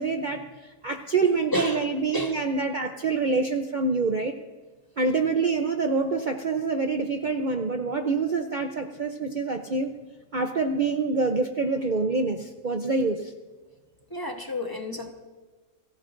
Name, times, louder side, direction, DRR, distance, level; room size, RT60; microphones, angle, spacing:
voice 1, 0.0-4.3 5.0-9.9 10.3-13.3, right 4 dB, 45° right, 5 dB, 0.7 m, -26 dB
voice 2, 1.2-1.9 2.1-2.3 14.1-15.1, left 1 dB, 15° left, 2 dB, 1.2 m, -31 dB
28.5 x 14.0 x 2.6 m, 1.3 s
omnidirectional pair, 1.4 m